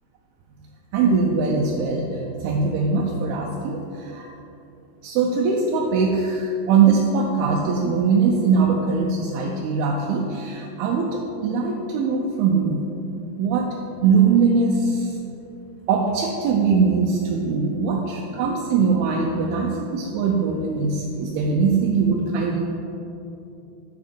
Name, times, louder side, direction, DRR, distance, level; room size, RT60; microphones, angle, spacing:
voice 1, 0.9-2.1 2.4-4.3 5.0-12.9 13.4-13.8 14.0-15.2 15.9-22.6, right 5 dB, 80° right, -1 dB, 2.4 m, -21 dB
11.0 x 4.1 x 4.5 m, 2.9 s
omnidirectional pair, 4.6 m